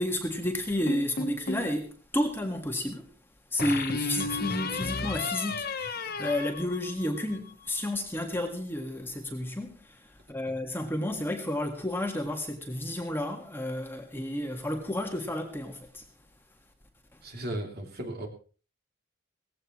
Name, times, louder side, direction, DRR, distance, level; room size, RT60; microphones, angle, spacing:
voice 1, 0.0-3.1 3.5-16.0, left 1 dB, 10° left, 1.8 m, -31 dB
sound 1, 0.9-1.8 3.6-7.4, left 3 dB, 45° left, 1.3 m, -33 dB
voice 2, 17.2-18.3, right 1 dB, 45° right, 3.1 m, -36 dB
18.5 x 16.0 x 3.2 m
head